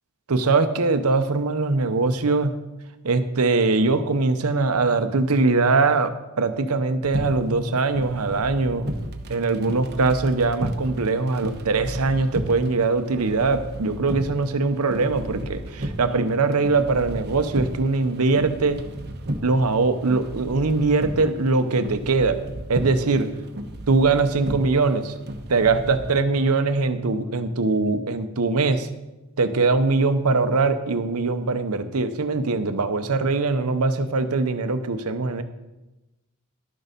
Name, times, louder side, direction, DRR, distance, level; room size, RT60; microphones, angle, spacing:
voice 1, 0.3-2.6 3.0-8.9 9.3-18.8 19.4-22.4 22.7-23.3 23.9-25.1 25.5-28.9 29.4-35.4, right 3 dB, 80° right, 9 dB, 0.8 m, -22 dB
sound 1, 7.0-26.1, right 1 dB, 50° right, 1.0 m, -34 dB
11.5 x 6.6 x 5.1 m, 1.0 s
head